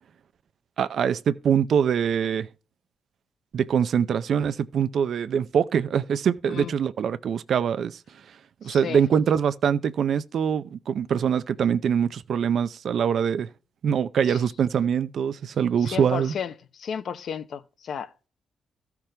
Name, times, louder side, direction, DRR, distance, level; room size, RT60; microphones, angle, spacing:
voice 1, 0.8-2.5 3.5-8.0 8.6-13.5 13.8-16.3, right 7 dB, 50° right, 0.5 m, -24 dB
voice 2, 8.6-9.0 14.2-14.4 15.8-18.3, left 7 dB, 50° left, 0.7 m, -34 dB
14.5 x 5.9 x 3.3 m
cardioid pair, 175°, 0 cm